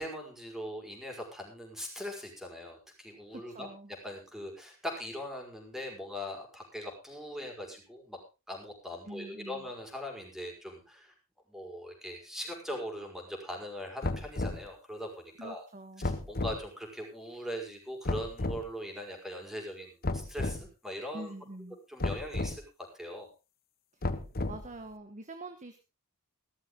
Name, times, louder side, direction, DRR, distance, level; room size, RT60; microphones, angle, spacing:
voice 1, 0.0-3.7 4.0-8.2 8.5-11.1 11.5-15.6 16.0-21.3 21.9-22.6 22.9-23.3, equal, ahead, 2 dB, 5.0 m, -41 dB
voice 2, 3.3-3.9 9.0-9.7 15.4-16.1 21.1-21.8 23.9-24.1 24.5-25.8, right 2 dB, 35° right, 8 dB, 1.3 m, -45 dB
sound 1, 14.0-14.7 16.0-16.6 18.0-18.6 20.0-20.6 22.0-22.6 24.0-24.7, left 2 dB, 45° left, 1.2 m, -33 dB
16.5 x 13.0 x 3.8 m, 0.29 s
head